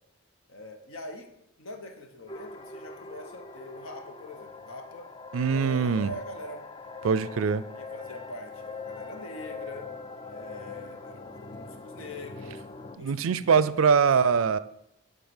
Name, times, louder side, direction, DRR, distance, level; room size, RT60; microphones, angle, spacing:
voice 1, 0.5-1.3 1.6-5.1 5.5-6.7 7.8-9.9 10.3-12.6 13.0-13.7, left 1 dB, 80° left, 1.2 m, -43 dB
sound 1, 2.3-13.0, left 4 dB, 25° left, 0.4 m, -42 dB
voice 2, 5.3-6.1 7.0-7.6 13.0-14.6, right 6 dB, 75° right, 0.4 m, -23 dB
9.4 x 4.0 x 7.1 m
head